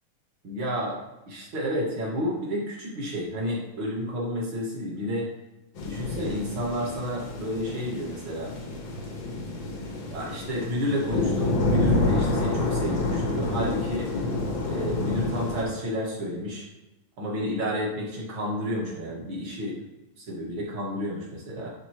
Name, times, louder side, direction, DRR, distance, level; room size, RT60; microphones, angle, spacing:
voice 1, 0.4-1.0 1.3-5.3 5.8-8.5 10.1-14.1 14.7-16.7 17.2-19.8 20.2-21.7, equal, 45° right, -4 dB, 2.4 m, -31 dB
sound 1, 5.8-15.6, left 2 dB, 55° left, 1.5 m, -28 dB
11.0 x 4.3 x 3.0 m, 0.99 s
omnidirectional pair, 3.3 m